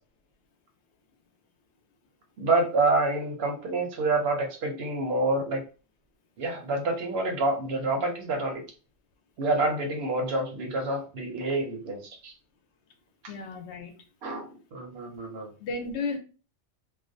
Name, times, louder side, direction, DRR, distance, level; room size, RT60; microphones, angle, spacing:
voice 1, 2.4-5.6 6.4-8.6 9.4-12.3 14.2-15.5, right 2 dB, 65° right, 3 dB, 0.8 m, -27 dB
voice 2, 13.3-13.9 15.6-16.2, left 4 dB, 75° left, 5 dB, 0.8 m, -33 dB
2.4 x 2.1 x 2.5 m, 0.35 s
omnidirectional pair, 1.2 m